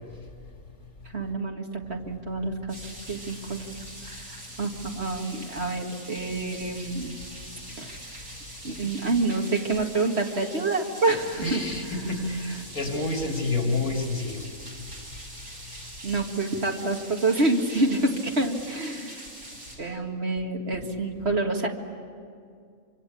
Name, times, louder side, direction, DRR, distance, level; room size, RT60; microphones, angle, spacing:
voice 1, 1.1-2.8 3.1-3.8 4.1-4.3 4.6-7.1 7.8-8.0 8.6-11.6 12.5-12.6 13.0-13.2 13.6-13.7 16.0-19.2 19.8-21.7, right 2 dB, 45° right, 2 dB, 2.2 m, -27 dB
sound 1, 2.7-19.8, right 1 dB, 80° right, 6.2 m, -43 dB
voice 2, 11.4-14.4, left 2 dB, 85° left, 2 dB, 3.9 m, -28 dB
26.0 x 25.5 x 8.5 m, 2.3 s
omnidirectional pair, 1.5 m